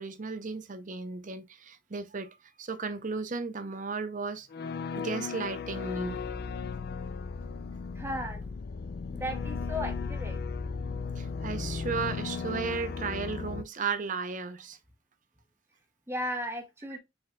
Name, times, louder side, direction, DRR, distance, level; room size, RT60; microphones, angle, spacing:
voice 1, 0.0-4.5 5.0-6.2 11.2-14.8, right 4 dB, 40° right, 0.6 m, -35 dB
sound 1, 4.5-13.6, left 5 dB, 55° left, 0.4 m, -36 dB
voice 2, 7.9-8.5 9.1-10.4 16.1-17.0, equal, 15° right, 1.1 m, -35 dB
5.6 x 4.2 x 2.3 m
head